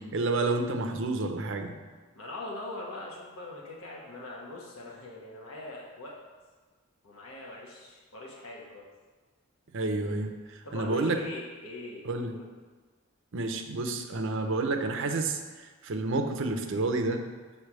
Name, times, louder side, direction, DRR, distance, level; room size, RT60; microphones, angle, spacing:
voice 1, 0.0-1.7 9.7-11.2 12.0-12.4 13.3-17.2, right 2 dB, 60° right, 6 dB, 0.6 m, -30 dB
voice 2, 2.1-6.2 7.0-8.9 10.6-12.4, left 2 dB, 90° left, -3 dB, 1.2 m, -42 dB
7.0 x 3.3 x 6.0 m, 1.4 s
head